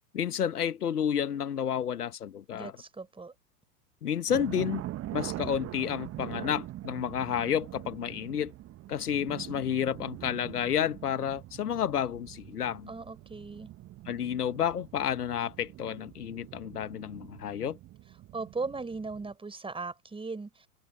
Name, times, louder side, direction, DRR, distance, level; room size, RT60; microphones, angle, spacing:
voice 1, 0.1-2.7 4.0-4.8 5.1-8.5 8.9-12.9 14.1-17.8, left 9 dB, 75° left, 1.5 m, -30 dB
voice 2, 2.5-3.3 12.9-13.7 18.3-20.7, right 3 dB, 10° right, 5.6 m, -38 dB
sound 1, 4.3-19.3, right 14 dB, 30° right, 1.4 m, -43 dB
figure-of-eight pair, 90°, 46 cm